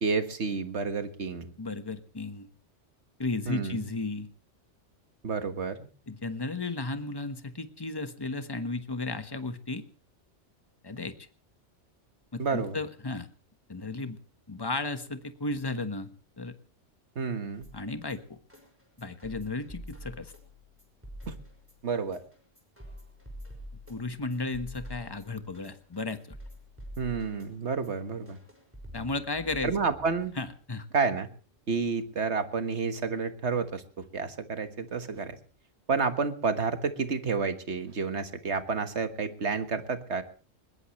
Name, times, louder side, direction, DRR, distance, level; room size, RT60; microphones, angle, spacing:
voice 1, 0.0-1.5 3.5-3.9 5.2-5.9 12.4-12.8 17.1-17.6 21.3-21.4 21.8-22.2 27.0-28.4 29.6-30.3 30.9-31.3 31.7-35.4 35.9-40.2, right 5 dB, 65° right, 9 dB, 1.8 m, -30 dB
voice 2, 1.6-2.5 3.2-4.3 6.1-9.8 10.8-11.3 12.3-13.3 13.7-14.2 14.5-16.1 16.4-16.5 17.7-18.2 19.0-20.3 23.9-26.4 28.9-29.7 30.4-30.9, left 3 dB, 20° left, 9 dB, 1.3 m, -34 dB
sound 1, 17.6-30.6, equal, 10° right, 5.7 m, -47 dB
21.5 x 20.5 x 3.2 m, 0.40 s
omnidirectional pair, 1.2 m